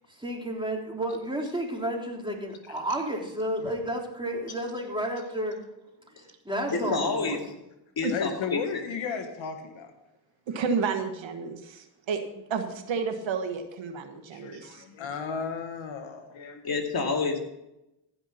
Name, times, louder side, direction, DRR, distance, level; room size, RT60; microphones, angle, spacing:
voice 1, 0.1-5.6 6.5-7.4 14.8-14.9, right 1 dB, 10° right, 0 dB, 3.4 m, -31 dB
voice 2, 6.7-7.6 8.0-8.6 16.6-17.4, left 4 dB, 50° left, 2 dB, 2.5 m, -28 dB
voice 3, 8.1-9.9 14.3-16.6, left 5 dB, 75° left, 6 dB, 1.5 m, -34 dB
voice 4, 10.5-12.2 12.5-14.8, right 5 dB, 75° right, 7 dB, 1.4 m, -31 dB
15.0 x 5.9 x 5.8 m, 0.91 s
supercardioid pair, 60°, 47 cm